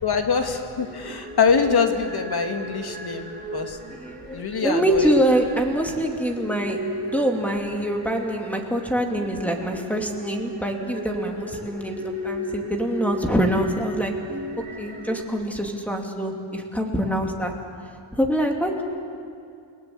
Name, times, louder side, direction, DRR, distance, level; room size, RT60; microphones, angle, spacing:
voice 1, 0.0-3.8 4.3-5.2, left 5 dB, 50° left, 4 dB, 2.4 m, -24 dB
sound 1, 0.8-15.2, equal, 20° right, 3.8 m, -35 dB
voice 2, 3.9-14.1 14.8-17.5 18.1-18.8, equal, 5° left, 2 dB, 2.7 m, -25 dB
29.5 x 19.5 x 8.5 m, 2.4 s
wide cardioid pair, 140°, 50 cm